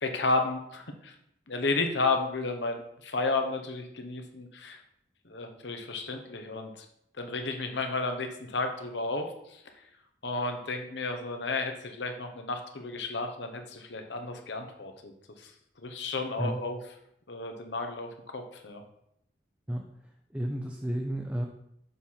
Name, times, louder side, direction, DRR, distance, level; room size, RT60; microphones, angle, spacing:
voice 1, 0.0-1.1 1.5-4.8 5.2-6.9 7.2-9.8 10.2-15.5 15.8-16.8 17.3-18.8, left 3 dB, 80° left, 5 dB, 1.0 m, -32 dB
voice 2, 20.3-21.4, equal, 10° right, 1 dB, 0.6 m, -31 dB
7.2 x 4.2 x 5.6 m, 0.77 s
head